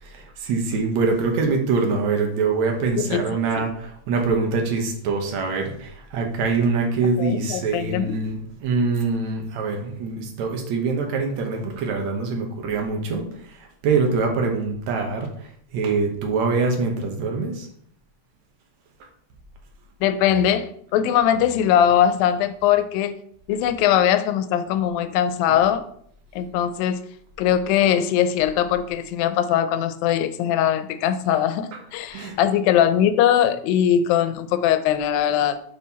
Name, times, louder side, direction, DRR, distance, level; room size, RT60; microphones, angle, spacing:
voice 1, 0.0-17.7 25.5-25.6 32.1-32.4, right 4 dB, 65° right, 2 dB, 2.1 m, -24 dB
voice 2, 7.2-8.2 20.0-23.2 23.5-25.8 26.4-27.0 27.4-35.6, left 10 dB, 90° left, 11 dB, 2.4 m, -21 dB
7.1 x 5.6 x 4.1 m, 0.66 s
omnidirectional pair, 4.0 m